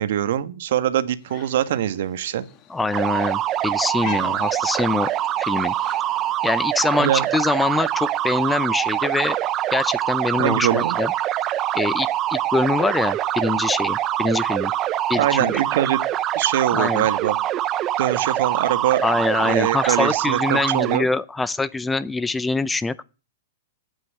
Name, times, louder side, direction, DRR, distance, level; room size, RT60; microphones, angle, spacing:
voice 1, 0.0-2.5 4.0-4.3 7.0-7.2 10.4-10.9 15.2-16.0 16.3-17.4 18.0-19.0 19.4-21.1, right 11 dB, 65° right, 1.4 m, -23 dB
sound 1, 1.2-6.5, left 9 dB, 35° left, 1.6 m, -46 dB
voice 2, 2.7-5.1 5.4-5.7 6.4-9.4 9.7-11.1 11.7-14.7 15.1-15.6 16.7-17.0 19.0-23.0, left 3 dB, 10° left, 0.6 m, -24 dB
sound 2, 2.9-21.0, right 12 dB, 30° right, 0.8 m, -24 dB
8.8 x 8.1 x 9.3 m
hypercardioid pair, 130°, 0 cm